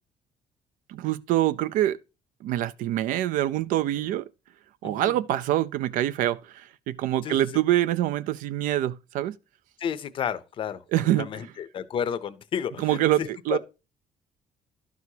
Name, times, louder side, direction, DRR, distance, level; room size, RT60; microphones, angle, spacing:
voice 1, 0.9-2.0 2.4-4.2 4.8-6.4 6.9-9.3 10.9-11.5 12.8-13.6, right 13 dB, 75° right, 0.4 m, -25 dB
voice 2, 4.8-5.1 7.2-7.4 9.8-13.6, left 8 dB, 40° left, 0.6 m, -32 dB
11.5 x 6.2 x 2.8 m
cardioid pair, 170°, 14 cm